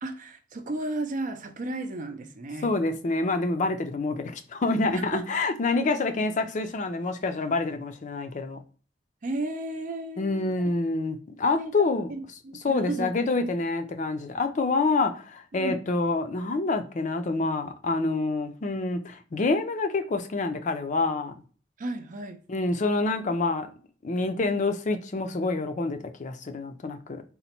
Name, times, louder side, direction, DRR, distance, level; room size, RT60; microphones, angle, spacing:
voice 1, 0.0-2.7 4.9-5.4 9.2-10.5 11.6-13.4 15.5-15.8 21.8-22.4, right 2 dB, 45° right, 0.5 m, -34 dB
voice 2, 2.6-8.6 10.2-12.1 12.6-21.3 22.5-23.7 24.0-27.2, left 3 dB, 45° left, 0.5 m, -27 dB
4.0 x 2.1 x 4.2 m
head